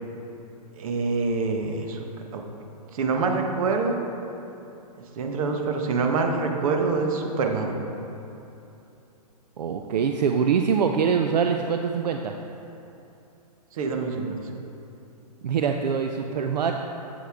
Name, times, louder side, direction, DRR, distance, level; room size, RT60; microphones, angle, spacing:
voice 1, 0.8-2.0 2.3-2.4 2.9-4.0 5.2-7.8 13.7-14.4, right 4 dB, 55° right, 3 dB, 1.1 m, -25 dB
voice 2, 9.6-12.4 15.4-16.7, right 6 dB, 80° right, 4 dB, 0.5 m, -24 dB
8.0 x 7.9 x 3.5 m, 2.8 s
hypercardioid pair, 135°, 21 cm